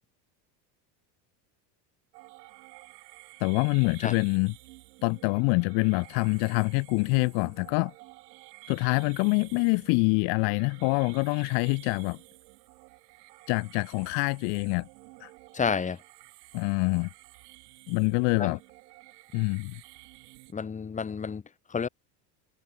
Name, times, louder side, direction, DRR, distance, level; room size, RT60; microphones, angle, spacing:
sound 1, 2.1-20.5, right 25 dB, 80° right, 4.6 m, -51 dB
voice 1, 3.4-4.5 5.0-7.9 8.7-12.2 13.5-14.9 15.2-15.3 16.5-17.1 17.9-18.6 19.3-19.7, left 36 dB, 55° left, 1.0 m, -25 dB
voice 2, 15.5-16.0 18.4-18.6 20.5-21.4 21.7-21.9, left 6 dB, 15° left, 2.1 m, -30 dB
cardioid pair, 155°, 48 cm